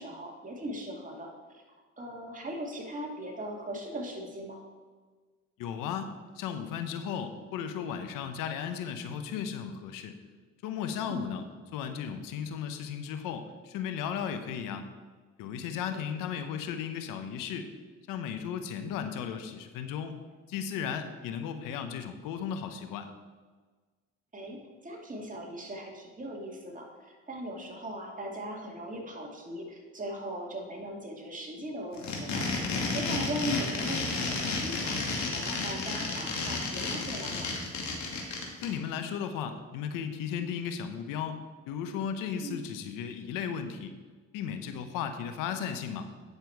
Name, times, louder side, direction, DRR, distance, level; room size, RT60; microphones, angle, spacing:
voice 1, 0.0-1.6 2.0-4.6 11.1-11.4 15.9-16.0 24.3-32.4 32.9-37.6 42.4-42.6, equal, 25° right, 0 dB, 2.4 m, -39 dB
voice 2, 5.6-10.2 10.6-11.4 11.7-14.9 15.4-17.7 18.1-20.2 20.5-23.1 38.6-41.4 41.7-43.9 44.3-46.1, left 8 dB, 90° left, 8 dB, 0.9 m, -35 dB
sound 1, 31.9-38.7, left 3 dB, 60° left, 2.2 m, -32 dB
9.8 x 6.7 x 4.6 m, 1.4 s
supercardioid pair, 80°, 32 cm